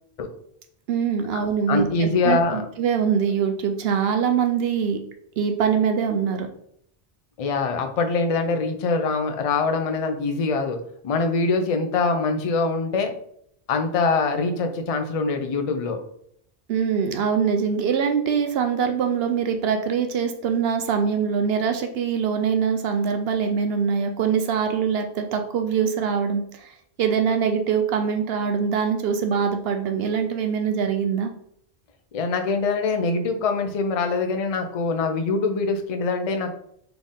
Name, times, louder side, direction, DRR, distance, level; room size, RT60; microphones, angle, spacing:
voice 1, 0.9-5.0 5.4-6.5 16.7-26.7 27.0-31.3, right 7 dB, 70° right, 6 dB, 0.8 m, -23 dB
voice 2, 1.7-2.7 7.4-10.8 11.0-13.1 13.7-16.0 32.1-36.5, left 4 dB, 45° left, 6 dB, 0.5 m, -23 dB
4.2 x 3.4 x 3.6 m, 0.69 s
omnidirectional pair, 1.1 m